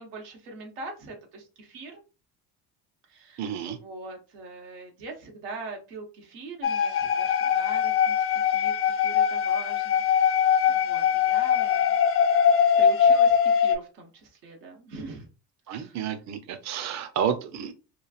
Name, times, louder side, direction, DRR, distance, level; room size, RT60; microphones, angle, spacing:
voice 1, 0.0-2.0 3.1-10.4 10.7-12.0 12.8-15.3 15.7-16.1, right 3 dB, 90° right, 1 dB, 1.0 m, -42 dB
voice 2, 3.4-3.8 15.7-17.7, right 8 dB, 40° right, 8 dB, 0.6 m, -30 dB
sound 1, 6.6-13.8, left 8 dB, 30° left, 0.4 m, -22 dB
3.0 x 2.3 x 2.3 m, 0.31 s
supercardioid pair, 75°, 45 cm